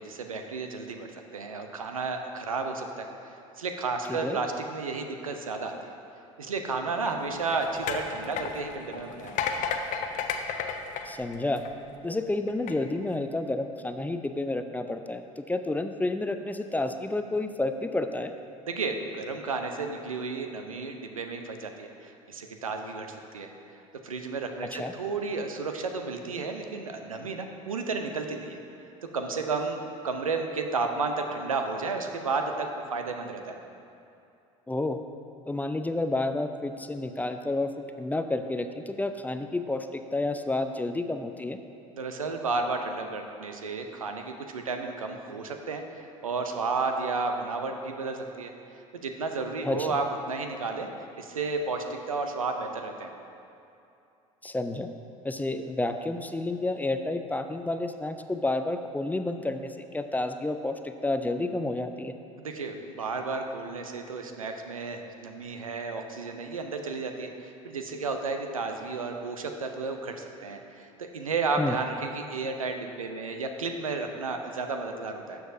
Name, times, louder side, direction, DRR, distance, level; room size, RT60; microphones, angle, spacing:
voice 1, 0.0-5.9 6.4-9.3 18.7-23.5 24.0-28.6 29.1-33.6 41.9-45.8 46.2-48.5 48.9-50.9 51.2-53.1 62.4-75.4, right 4 dB, 90° right, 5 dB, 0.6 m, -32 dB
sound 1, 7.0-11.9 12.5-12.7, left 6 dB, 50° left, 0.6 m, -33 dB
voice 2, 11.0-11.6 12.0-18.3 24.6-24.9 34.7-35.0 35.5-37.7 38.0-41.6 49.6-50.0 54.4-54.9 55.2-62.1 71.6-71.7, left 2 dB, 10° left, 8 dB, 0.4 m, -30 dB
12.0 x 7.0 x 2.6 m, 2.7 s
figure-of-eight pair, 65°, 17 cm